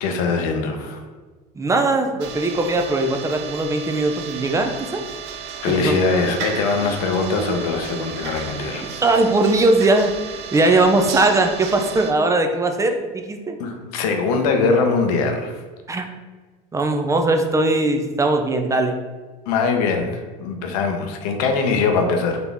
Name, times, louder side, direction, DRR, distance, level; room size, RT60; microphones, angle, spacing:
voice 1, 0.0-1.0 5.6-8.9 13.6-15.6 19.5-22.4, left 4 dB, 75° left, 5 dB, 0.8 m, -22 dB
voice 2, 1.6-5.0 5.6-5.9 9.0-10.1 10.5-13.6 15.9-16.0 16.7-18.9, right 2 dB, 15° right, 5 dB, 0.5 m, -19 dB
sound 1, 2.2-12.1, right 6 dB, 55° right, 0.6 m, -33 dB
4.0 x 2.9 x 3.5 m, 1.4 s
supercardioid pair, 95°, 20 cm